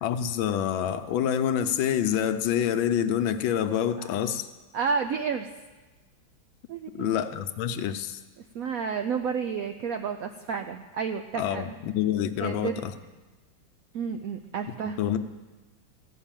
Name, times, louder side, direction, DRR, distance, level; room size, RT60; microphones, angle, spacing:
voice 1, 0.0-4.5 6.9-8.2 11.3-12.9 15.0-15.2, left 9 dB, 80° left, 9 dB, 1.5 m, -27 dB
voice 2, 4.7-5.5 6.7-7.2 8.5-11.7 12.4-12.8 13.9-15.0, right 6 dB, 80° right, 7 dB, 0.7 m, -31 dB
14.5 x 6.1 x 8.9 m, 1.2 s
omnidirectional pair, 2.2 m